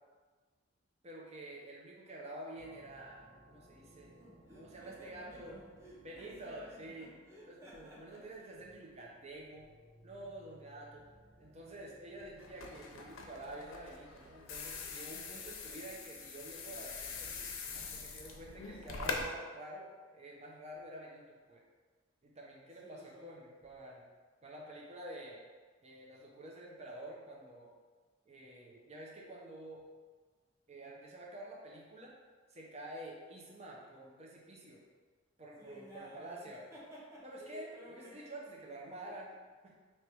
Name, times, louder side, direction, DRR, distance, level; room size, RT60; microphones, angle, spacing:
voice 1, 1.0-4.1 4.5-5.6 6.0-7.1 7.5-9.7 10.0-11.0 11.4-17.5 17.7-21.6 22.2-24.0 24.4-25.4 25.8-27.7 28.3-29.8 30.7-32.1 32.5-34.8 35.4-36.6 37.2-39.3 39.6-39.7, right 1 dB, 35° right, -2 dB, 0.7 m, -49 dB
sound 1, 2.6-17.6, right 1 dB, 70° right, 1.2 m, -63 dB
voice 2, 4.2-8.6 11.3-12.0 22.8-23.3 35.6-38.3 38.8-39.1, right 1 dB, 15° right, -7 dB, 1.0 m, -55 dB
sound 2, 12.4-19.2, left 4 dB, 90° left, 0.6 m, -43 dB
3.3 x 3.0 x 4.5 m, 1.4 s
head